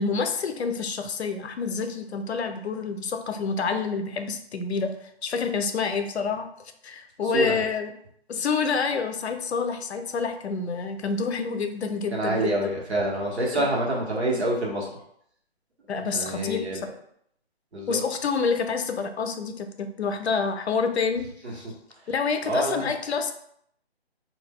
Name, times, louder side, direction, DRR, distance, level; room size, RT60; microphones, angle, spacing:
voice 1, 0.0-4.9 5.2-6.5 6.8-7.9 8.3-12.7 13.5-13.7 15.9-16.8 17.9-21.3 21.6-21.7 22.1-23.3, left 5 dB, 80° left, 7 dB, 0.5 m, -28 dB
voice 2, 12.1-14.9 16.1-16.8 17.7-18.0 22.4-22.8, right 1 dB, 85° right, -3 dB, 1.3 m, -26 dB
2.6 x 2.2 x 3.6 m, 0.70 s
hypercardioid pair, 165°, 32 cm